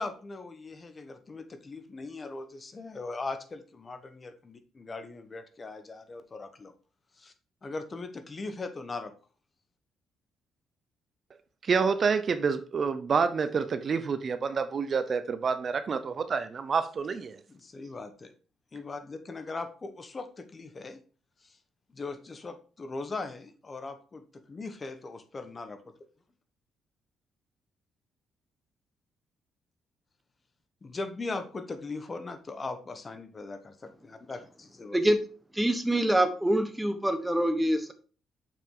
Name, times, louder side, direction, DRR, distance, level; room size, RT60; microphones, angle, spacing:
voice 1, 0.0-6.7 7.2-7.3 7.6-9.1 17.5-18.3 18.7-21.0 21.4-21.6 21.9-24.2 24.5-25.9 30.8-35.0, left 3 dB, 30° left, 1.1 m, -39 dB
voice 2, 11.7-17.3, right 5 dB, 45° right, 0.6 m, -28 dB
voice 3, 35.5-37.9, right 1 dB, 5° right, 1.2 m, -25 dB
6.9 x 5.9 x 3.9 m
cardioid pair, 90°, 0 cm